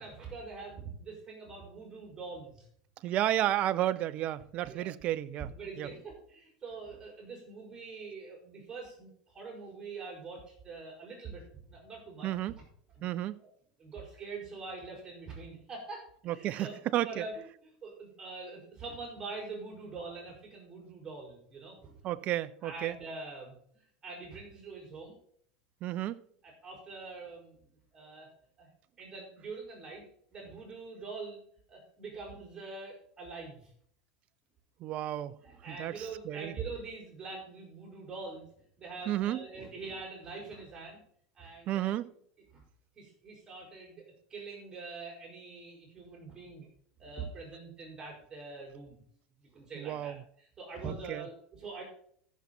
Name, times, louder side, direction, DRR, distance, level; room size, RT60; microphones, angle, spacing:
voice 1, 0.0-2.7 4.7-4.9 5.5-12.6 13.0-13.1 13.4-13.5 13.8-16.7 17.0-22.0 22.6-25.2 26.4-27.6 27.9-28.3 28.6-28.7 29.0-30.1 30.3-31.4 31.7-33.7 35.4-38.5 38.8-41.0 41.4-41.9 42.5-42.6 43.0-46.7 47.0-49.0 49.4-51.8, right 4 dB, 25° right, 5.7 m, -44 dB
voice 2, 3.0-5.9 12.2-12.6 13.0-13.4 16.3-17.2 22.0-23.0 25.8-26.2 34.8-35.4 35.7-36.5 39.1-39.4 41.7-42.1 49.8-50.2 50.8-51.2, right 13 dB, 45° right, 0.7 m, -32 dB
14.0 x 7.4 x 4.3 m
hypercardioid pair, 90°, 3 cm